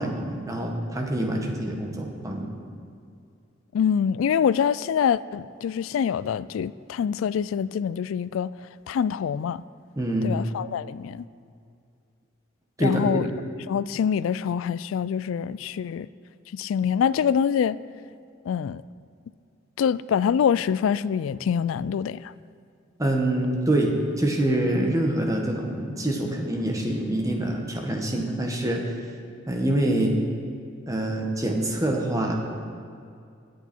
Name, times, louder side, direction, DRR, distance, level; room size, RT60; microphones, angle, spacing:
voice 1, 0.0-2.5 10.0-10.3 12.8-13.2 23.0-28.8 29.5-30.2 30.9-32.4, right 1 dB, 15° right, 1 dB, 1.5 m, -25 dB
voice 2, 3.7-8.5 8.9-9.6 10.2-11.3 12.8-13.3 13.7-16.1 16.5-17.8 18.5-18.8 19.8-22.3, left 7 dB, 85° left, 18 dB, 0.3 m, -25 dB
21.5 x 8.2 x 4.5 m, 2.4 s
head